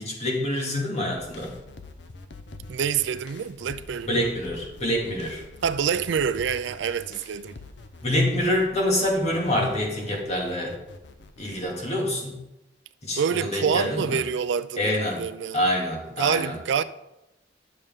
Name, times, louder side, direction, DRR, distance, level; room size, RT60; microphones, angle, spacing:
voice 1, 0.0-1.5 4.0-5.4 8.0-10.8 11.4-12.3 13.0-14.2 14.8-15.2 15.5-16.6, left 1 dB, 35° left, 2.1 m, -26 dB
sound 1, 1.1-11.6, left 2 dB, 65° left, 0.7 m, -45 dB
voice 2, 2.7-4.2 5.6-7.6 13.2-15.6 16.2-16.8, right 7 dB, 70° right, 0.4 m, -26 dB
11.0 x 6.6 x 3.6 m
head